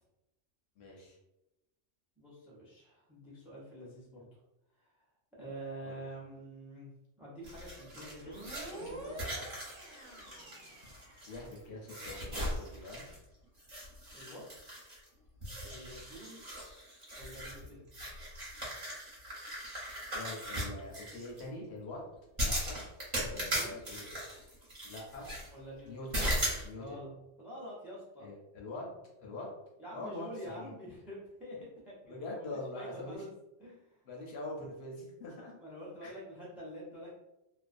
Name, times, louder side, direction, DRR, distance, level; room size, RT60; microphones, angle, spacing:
voice 1, 0.8-1.2 5.8-6.0 11.3-13.0 20.1-22.0 22.4-22.8 23.2-24.2 24.8-25.3 25.8-26.3 26.6-27.0 28.2-28.9 29.2-29.5 29.9-30.7 32.1-33.2 34.1-35.6 36.0-36.1, left 2 dB, 65° left, -1 dB, 0.8 m, -44 dB
voice 2, 2.2-4.4 4.8-5.1 5.4-6.9 7.2-9.4 14.1-14.4 15.7-16.4 17.2-17.9 23.2-23.8 25.5-26.1 26.8-28.3 29.8-33.3 33.6-34.0 35.6-37.1, right 1 dB, ahead, -5 dB, 0.4 m, -47 dB
sound 1, 7.4-11.6 11.9-13.2 13.6-15.1 15.4-21.4 22.4-25.5 26.1-26.7, equal, 35° right, 0.9 m, -38 dB
sound 2, 8.2-11.7, right 1 dB, 90° right, 1.2 m, -47 dB
2.4 x 2.1 x 2.4 m, 0.94 s
omnidirectional pair, 1.3 m